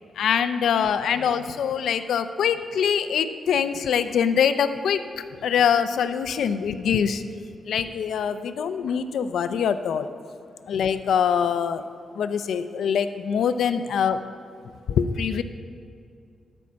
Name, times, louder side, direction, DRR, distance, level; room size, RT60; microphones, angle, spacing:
voice 1, 0.2-7.2 7.7-10.1 10.7-11.8 12.1-14.2 14.9-15.4, left 7 dB, 90° left, 10 dB, 0.5 m, -24 dB
13.0 x 5.4 x 7.4 m, 2.3 s
wide cardioid pair, 125°, 0 cm